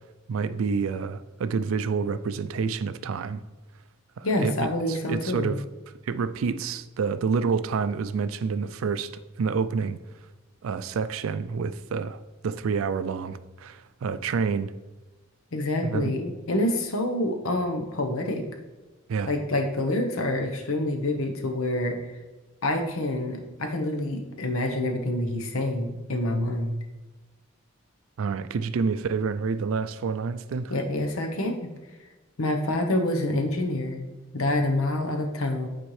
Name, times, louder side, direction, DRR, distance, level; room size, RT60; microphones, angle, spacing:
voice 1, 0.3-3.4 4.2-5.6 6.1-9.1 9.4-10.0 10.6-14.7 15.8-16.1 19.1-19.3 28.2-30.7, right 5 dB, 75° right, 0.4 m, -28 dB
voice 2, 4.2-5.6 15.5-18.4 19.3-22.0 22.6-26.7 30.7-31.7 32.4-34.1 34.3-35.7, left 1 dB, 85° left, 0.9 m, -27 dB
8.8 x 4.3 x 3.2 m
head